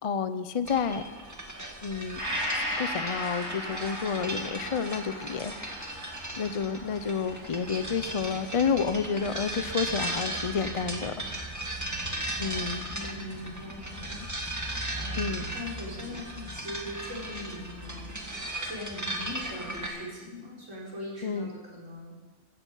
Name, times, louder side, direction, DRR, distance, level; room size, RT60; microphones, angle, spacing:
voice 1, 0.0-1.0 1.8-2.2 2.5-5.5 6.4-11.5 12.4-12.8 15.2-15.5 21.2-21.5, left 6 dB, 35° left, 11 dB, 0.5 m, -30 dB
sound 1, 0.6-19.9, right 1 dB, 15° right, 2.0 m, -37 dB
Gong, 2.2-9.8 10.2-10.3, equal, 50° right, 5.9 m, -37 dB
voice 2, 12.9-15.2 15.5-22.2, left 1 dB, 70° right, -5 dB, 5.0 m, -41 dB
16.5 x 14.0 x 5.6 m, 1.3 s
omnidirectional pair, 1.3 m